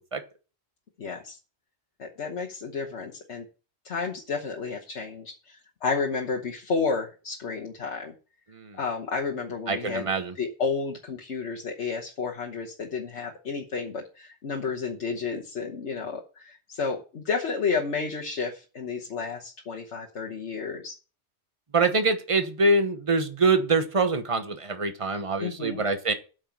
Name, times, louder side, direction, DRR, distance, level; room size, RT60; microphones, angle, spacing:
voice 1, 1.0-1.4 2.0-3.4 3.8-8.1 8.8-10.1 10.3-21.0 25.4-25.8, left 5 dB, 80° left, 0 dB, 1.5 m, -31 dB
voice 2, 9.7-10.3 21.7-26.1, right 3 dB, 30° right, 8 dB, 1.1 m, -24 dB
9.0 x 6.4 x 5.9 m, 0.35 s
omnidirectional pair, 1.1 m